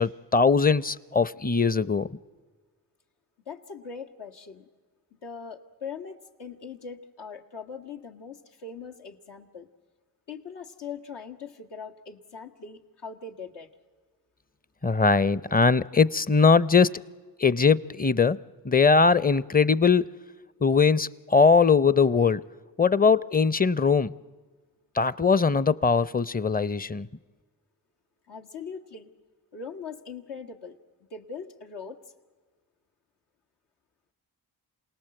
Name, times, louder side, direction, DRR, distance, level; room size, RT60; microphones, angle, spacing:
voice 1, 0.0-2.1 14.8-16.9 17.4-18.4 18.6-20.1 20.6-22.4 22.8-24.2 25.0-27.1, left 5 dB, 20° left, 0.6 m, -21 dB
voice 2, 3.5-4.7 5.2-9.7 10.3-13.7 28.3-29.1 29.5-30.8 31.1-32.0, left 5 dB, 80° left, 1.7 m, -41 dB
27.5 x 18.5 x 7.8 m
cardioid pair, 50°, 41 cm